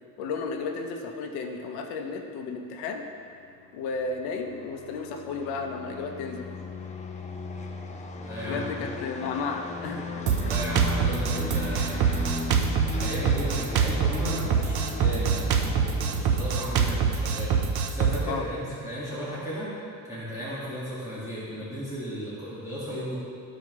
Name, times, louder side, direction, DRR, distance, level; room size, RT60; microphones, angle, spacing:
voice 1, 0.2-3.1 3.7-6.5 8.4-10.0 10.4-10.5 18.3-18.5, left 4 dB, 90° left, 3 dB, 0.9 m, -33 dB
sound 1, 3.2-16.5, left 4 dB, 20° left, 0.5 m, -38 dB
voice 2, 8.2-8.7 10.4-12.4 12.9-17.5 17.9-19.7 20.0-23.1, equal, 10° right, -11 dB, 1.8 m, -35 dB
Drum kit, 10.3-18.2, right 6 dB, 75° right, 0.8 m, -25 dB
13.5 x 4.9 x 3.1 m, 2.6 s
cardioid pair, 150°, 38 cm